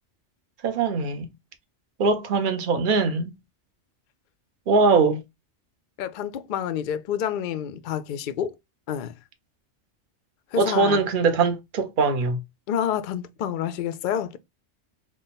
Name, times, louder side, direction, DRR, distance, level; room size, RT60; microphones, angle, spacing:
voice 1, 0.6-1.3 2.0-3.3 4.7-5.2 10.6-12.4, right 4 dB, 50° right, 0.9 m, -21 dB
voice 2, 6.0-8.6 8.9-9.1 10.5-11.0 12.7-14.4, left 9 dB, 60° left, 0.5 m, -28 dB
3.7 x 2.3 x 3.9 m
omnidirectional pair, 1.2 m